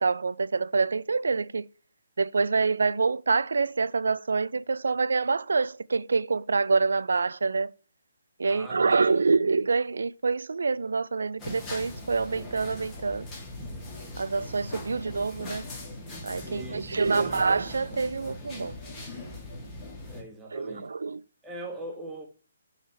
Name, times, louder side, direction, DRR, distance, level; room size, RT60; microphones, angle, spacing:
voice 1, 0.0-1.7 2.2-7.7 8.4-13.3 14.2-15.6 16.2-18.8 20.5-21.2, right 4 dB, 75° right, 0.4 m, -26 dB
voice 2, 8.5-9.3 16.4-17.3 20.1-20.9 21.4-22.3, right 1 dB, 10° right, 2.0 m, -41 dB
sound 1, 11.4-20.2, left 1 dB, 20° left, 2.7 m, -40 dB
6.6 x 4.3 x 4.4 m
figure-of-eight pair, 140°, 0 cm